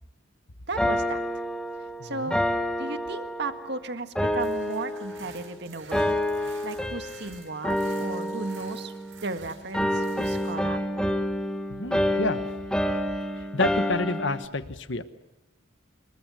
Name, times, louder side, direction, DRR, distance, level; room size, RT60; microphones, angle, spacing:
voice 1, 0.7-1.2 2.0-2.4 2.8-6.2 6.6-8.9 9.2-10.8, right 3 dB, 55° right, 8 dB, 1.8 m, -35 dB
sound 1, 0.8-3.7 4.2-5.5 5.9-7.3 7.6-9.4 9.7-14.5, left 1 dB, 5° left, 1.6 m, -28 dB
sound 2, 4.4-10.6, right 5 dB, 75° right, 5.7 m, -51 dB
voice 2, 11.7-12.4 13.5-15.0, left 2 dB, 60° left, 11 dB, 1.3 m, -28 dB
27.5 x 22.5 x 6.2 m, 1.0 s
head